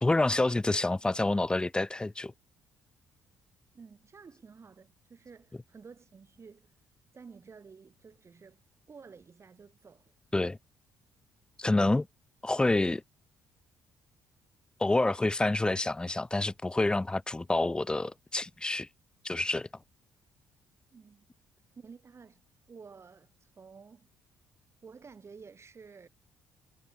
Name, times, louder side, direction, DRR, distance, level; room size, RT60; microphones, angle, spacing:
voice 1, 0.0-2.3 10.3-10.6 11.6-12.1 12.4-13.0 14.8-18.9 19.2-19.7, left 2 dB, 10° left, 0.4 m, -28 dB
voice 2, 3.7-6.7 7.1-8.6 8.9-10.1 20.9-21.3 21.8-22.4 22.7-24.1 24.8-26.1, right 5 dB, 40° right, 5.9 m, -52 dB
hypercardioid pair, 50°, 7 cm